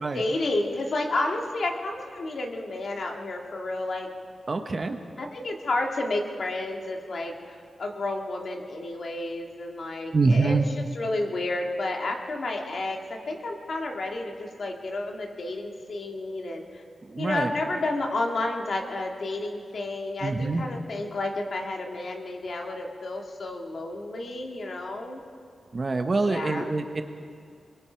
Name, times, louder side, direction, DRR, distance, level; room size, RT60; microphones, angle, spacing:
voice 1, 0.1-4.1 5.2-10.6 10.9-16.8 17.2-25.2 26.3-26.7, left 2 dB, 60° left, 2 dB, 2.2 m, -31 dB
voice 2, 4.5-5.0 10.1-10.7 17.0-17.5 20.2-20.6 25.7-27.0, right 3 dB, 35° right, 6 dB, 1.2 m, -25 dB
25.0 x 22.5 x 4.6 m, 2.2 s
wide cardioid pair, 120°, 0 cm